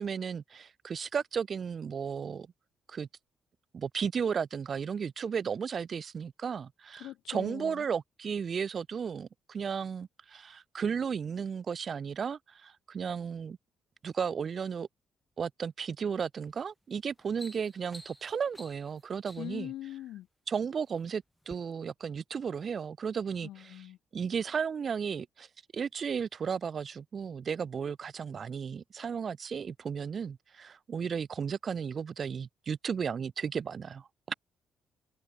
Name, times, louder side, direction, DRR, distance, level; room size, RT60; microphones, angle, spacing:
voice 1, 0.0-2.5 2.9-3.1 3.7-13.6 14.0-14.9 15.4-19.7 20.5-23.8 24.1-25.5 25.7-34.3, right 6 dB, 45° right, 0.6 m, -34 dB
voice 2, 7.0-7.9 19.4-20.3 23.4-24.0, left 13 dB, 85° left, 2.5 m, -42 dB
sound 1, 16.4-16.7 17.1-19.7 20.5-21.0 21.4-21.6, equal, ahead, 3.2 m, -51 dB
cardioid pair, 90°, 0 cm